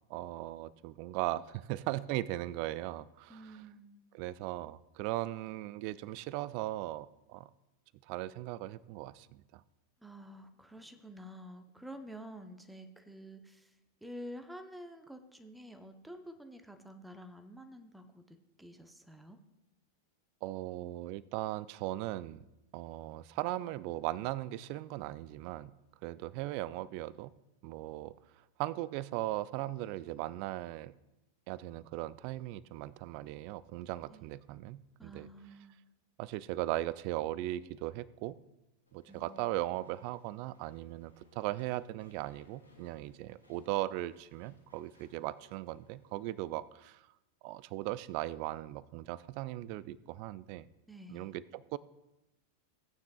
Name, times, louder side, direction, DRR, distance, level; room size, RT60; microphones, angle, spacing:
voice 1, 0.1-3.6 4.1-7.5 8.1-9.6 20.4-22.4 22.7-25.7 26.0-27.3 27.6-28.1 28.6-30.9 31.5-35.3 36.2-38.4 38.9-47.0 47.4-50.7 51.1-51.8, right 16 dB, 45° right, 20 dB, 0.4 m, -38 dB
voice 2, 3.3-4.2 10.0-13.7 14.0-19.4 34.1-34.3 35.0-35.8 39.0-39.5 50.9-51.3, equal, 5° right, 6 dB, 0.8 m, -49 dB
Walk footsteps / Chatter / Squeak, 38.9-46.5, left 1 dB, 90° left, 2.8 m, -66 dB
17.0 x 9.2 x 2.4 m, 0.94 s
figure-of-eight pair, 90°, 0 cm